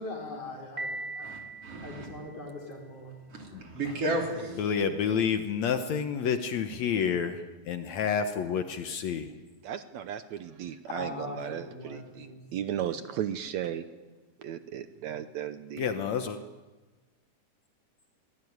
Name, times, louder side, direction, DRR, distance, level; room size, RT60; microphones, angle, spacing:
voice 1, 0.0-1.3 1.8-3.1 10.9-12.4 12.7-12.9, left 2 dB, 50° left, 0 dB, 5.7 m, -41 dB
Piano, 0.8-2.7, right 2 dB, 30° right, 1.4 m, -40 dB
voice 2, 1.2-2.1 3.3-4.6, right 1 dB, 50° right, 1 dB, 4.5 m, -33 dB
voice 3, 4.6-9.3 15.8-16.4, left 7 dB, 65° left, 7 dB, 2.2 m, -29 dB
voice 4, 9.6-13.8 14.4-15.8, right 10 dB, 70° right, 10 dB, 2.1 m, -35 dB
23.0 x 18.0 x 9.5 m, 1.2 s
omnidirectional pair, 3.5 m